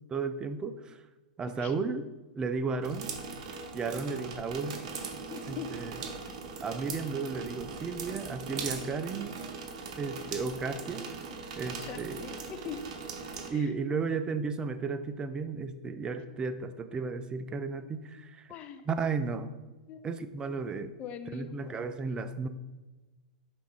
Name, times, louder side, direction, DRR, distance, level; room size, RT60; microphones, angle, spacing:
voice 1, 0.1-1.0 1.4-2.1 2.4-3.1 3.7-4.8 5.5-6.0 6.6-9.3 10.0-11.0 11.6-12.2 13.5-18.5 18.9-19.5 20.0-21.0 21.3-22.5, right 4 dB, 20° right, 10 dB, 0.4 m, -34 dB
sound 1, 2.8-13.5, right 5 dB, 60° right, 1.0 m, -40 dB
voice 2, 5.3-5.7 11.8-12.8 13.5-13.7 18.5-18.9 19.9-20.0 21.0-22.0, left 9 dB, 35° left, 9 dB, 0.6 m, -42 dB
5.9 x 3.5 x 4.9 m, 1.2 s
hypercardioid pair, 115°, 4 cm